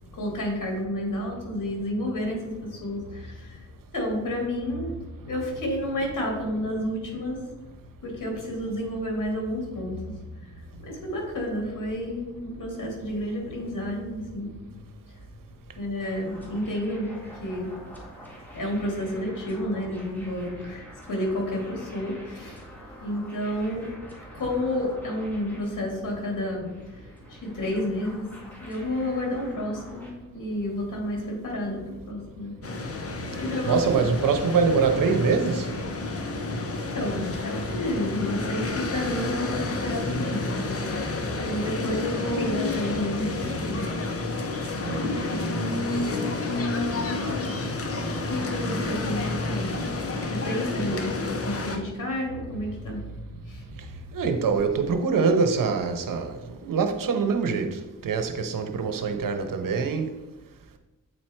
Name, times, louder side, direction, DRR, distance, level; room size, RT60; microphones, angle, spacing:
voice 1, 0.1-3.7 3.9-5.0 5.2-7.5 8.0-14.9 15.8-17.7 18.5-22.6 23.0-23.9 24.3-28.3 28.6-32.5 32.9-33.0 33.4-34.0 36.9-41.0 41.4-43.9 48.3-49.7 50.3-53.7, left 1 dB, 70° left, 2.7 m, -31 dB
sound 1, 16.0-30.1, equal, 5° left, 1.9 m, -47 dB
sound 2, 32.6-51.8, left 2 dB, 45° left, 0.9 m, -30 dB
voice 2, 33.6-35.7 44.8-45.5 50.9-51.0 54.1-60.1, right 5 dB, 80° right, 0.8 m, -24 dB
8.1 x 4.4 x 4.5 m
wide cardioid pair, 110°, 33 cm